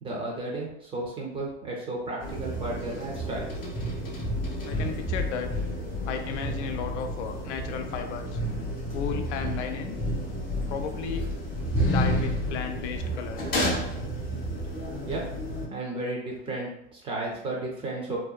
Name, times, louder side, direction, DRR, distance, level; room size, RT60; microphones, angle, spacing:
voice 1, 0.0-3.5 15.0-15.2 15.7-18.2, right 2 dB, 15° right, -2 dB, 0.4 m, -33 dB
sound 1, 2.2-15.7, equal, 25° left, 0.7 m, -31 dB
voice 2, 4.6-5.5 6.0-8.4 8.9-10.0 10.7-11.3 11.8-13.4, left 7 dB, 80° left, 6 dB, 0.5 m, -34 dB
2.7 x 2.2 x 2.3 m, 0.76 s
supercardioid pair, 140°, 35 cm